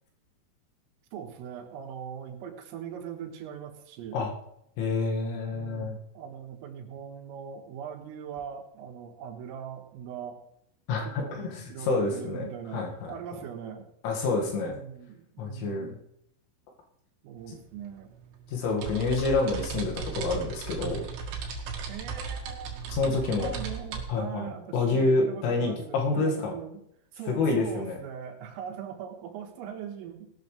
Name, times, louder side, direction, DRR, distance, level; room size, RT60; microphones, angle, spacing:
voice 1, 1.1-4.2 5.5-10.4 10.9-13.9 14.6-16.0 17.2-18.1 21.8-26.8 27.1-30.3, right 8 dB, 85° right, 5 dB, 4.0 m, -41 dB
voice 2, 4.8-6.0 10.9-12.5 12.7-13.1 14.0-14.8 15.4-15.9 18.5-21.1 22.9-23.5 24.1-26.5 27.3-28.0, left 3 dB, 75° left, 0 dB, 4.6 m, -28 dB
sound 1, 17.4-17.5 17.8-24.0, right 5 dB, 60° right, 3.5 m, -36 dB
18.5 x 12.5 x 3.3 m, 0.77 s
omnidirectional pair, 5.8 m